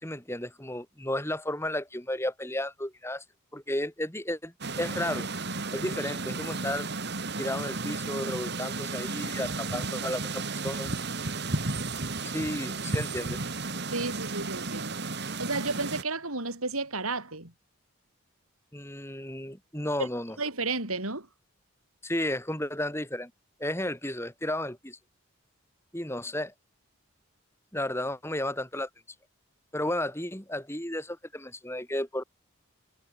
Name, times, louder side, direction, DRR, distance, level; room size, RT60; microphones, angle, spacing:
voice 1, 0.0-3.2 3.5-5.3 5.7-6.9 7.4-10.9 12.3-13.4 18.7-20.4 22.0-23.3 23.6-25.0 25.9-26.5 27.7-28.9 29.7-32.2, left 1 dB, 10° left, 4.9 m, -33 dB
sound 1, 4.6-16.0, right 3 dB, 50° right, 2.6 m, -33 dB
voice 2, 13.9-15.0 15.4-17.5 20.0-20.1 20.4-21.3, right 3 dB, 80° right, 8.0 m, -32 dB
head